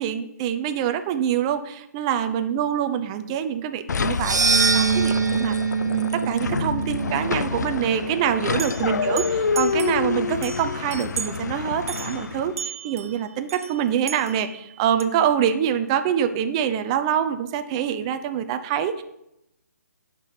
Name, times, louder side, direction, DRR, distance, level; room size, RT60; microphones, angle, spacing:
voice 1, 0.0-5.6 5.9-12.5 12.8-19.0, right 9 dB, 20° right, 9 dB, 0.6 m, -25 dB
sound 1, 3.9-12.6, left 5 dB, 75° left, 0.5 m, -28 dB
sound 2, 4.1-8.4, right 5 dB, 80° right, 1.2 m, -24 dB
sound 3, 8.6-10.1 10.4-11.4 11.9-15.0, right 6 dB, 55° right, 1.0 m, -36 dB
11.0 x 6.0 x 4.9 m, 0.83 s
hypercardioid pair, 160°, 9 cm